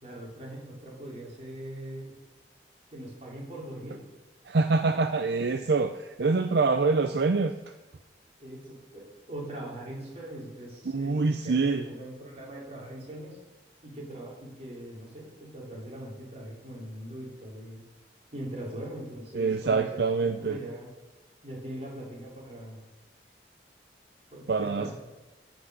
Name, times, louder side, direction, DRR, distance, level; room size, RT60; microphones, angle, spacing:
voice 1, 0.0-2.1 2.9-4.0 8.4-13.4 13.8-17.8 18.3-20.0 20.4-20.9 21.4-22.8 24.3-24.9, right 1 dB, 35° right, -4 dB, 3.9 m, -41 dB
voice 2, 4.5-7.6 10.9-11.8 19.3-20.6 24.5-24.9, right 4 dB, 65° right, 8 dB, 0.5 m, -25 dB
13.5 x 6.2 x 6.4 m, 1.2 s
head